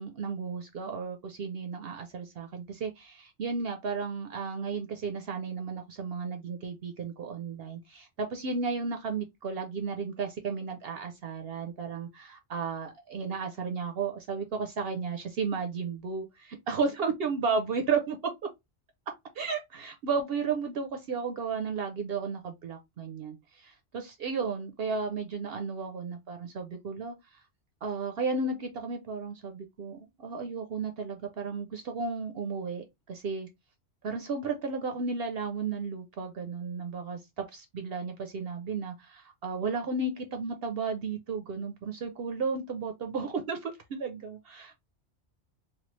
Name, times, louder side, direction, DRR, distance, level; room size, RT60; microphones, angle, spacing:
voice 1, 0.0-18.5 19.4-27.1 27.8-33.5 34.0-44.8, right 4 dB, 65° right, 0.8 m, -33 dB
3.2 x 2.3 x 3.0 m
omnidirectional pair, 1.2 m